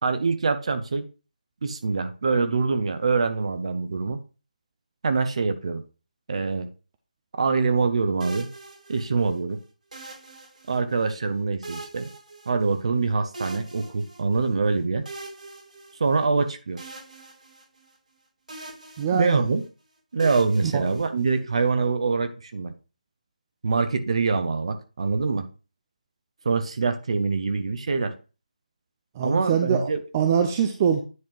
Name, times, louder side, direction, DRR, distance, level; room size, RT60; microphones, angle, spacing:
voice 1, 0.0-1.0 1.6-4.2 5.0-5.8 6.3-6.7 7.4-8.5 8.9-9.6 10.7-12.1 12.5-15.0 16.0-16.9 19.1-19.6 20.1-22.7 23.6-25.5 26.4-28.1 29.2-30.0, right 4 dB, 45° right, 9 dB, 1.0 m, -24 dB
sound 1, 8.2-9.4 9.9-11.1 11.6-13.0 13.3-14.5 15.1-16.4 16.8-18.2 18.5-19.7 20.2-21.6, right 2 dB, 65° right, 2.9 m, -42 dB
voice 2, 19.0-19.4 20.6-20.8 29.2-29.9 30.1-31.0, right 7 dB, 20° right, 5 dB, 0.6 m, -23 dB
9.7 x 3.5 x 4.6 m, 0.33 s
figure-of-eight pair, 160°, 4 cm